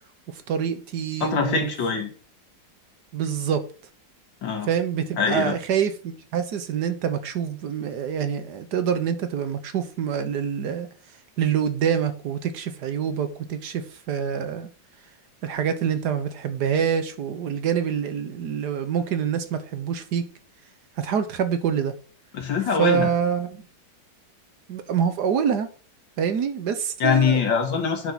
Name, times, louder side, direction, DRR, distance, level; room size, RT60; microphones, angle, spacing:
voice 1, 0.3-1.7 3.1-3.6 4.7-10.9 11.4-14.7 15.4-20.3 21.0-21.9 22.8-23.6 24.7-25.7 26.2-27.4, right 8 dB, 65° right, 1.4 m, -26 dB
voice 2, 1.2-2.1 4.4-4.7 5.2-5.6 22.3-23.1 27.0-28.1, left 6 dB, 80° left, 2.5 m, -23 dB
9.3 x 5.9 x 4.0 m
omnidirectional pair, 2.0 m